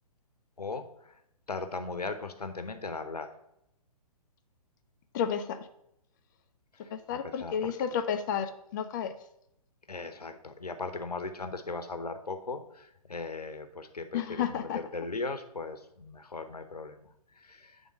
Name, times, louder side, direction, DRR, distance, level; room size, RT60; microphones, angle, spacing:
voice 1, 0.6-1.1 1.5-3.3 6.8-6.9 7.4-7.7 9.9-17.8, left 3 dB, 80° left, 8 dB, 0.9 m, -38 dB
voice 2, 5.1-5.6 6.9-9.1 14.1-14.8, left 8 dB, 30° left, 8 dB, 0.6 m, -31 dB
8.5 x 3.6 x 5.1 m, 0.78 s
figure-of-eight pair, 125°, 20 cm